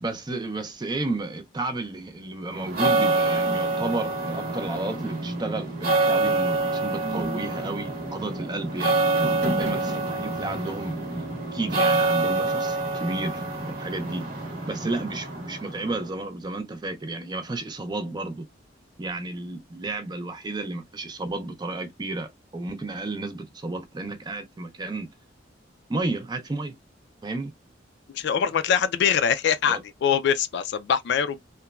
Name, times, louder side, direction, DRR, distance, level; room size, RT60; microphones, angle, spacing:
voice 1, 0.0-11.0 11.5-14.3 14.7-18.5 19.0-25.1 25.9-26.8 27.2-27.5 29.7-29.8, right 2 dB, 25° right, 0.4 m, -32 dB
sound 1, 2.5-16.1, right 3 dB, 50° right, 0.8 m, -26 dB
voice 2, 28.1-31.4, left 7 dB, 60° left, 0.3 m, -23 dB
3.0 x 2.1 x 2.2 m
head